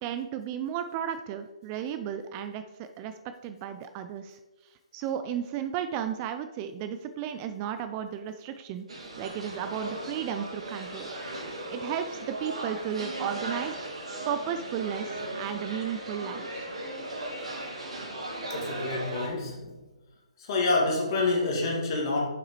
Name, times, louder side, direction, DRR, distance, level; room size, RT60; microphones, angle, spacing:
voice 1, 0.0-3.1 3.4-4.4 4.9-11.1 11.7-16.7, right 9 dB, 25° right, 9 dB, 0.3 m, -34 dB
sound 1, 8.9-19.3, right 1 dB, 70° right, 2.2 m, -37 dB
voice 2, 18.5-19.8 20.4-22.3, left 3 dB, 45° left, -1 dB, 1.9 m, -27 dB
7.1 x 5.9 x 3.0 m, 1.2 s
figure-of-eight pair, 140°, 3 cm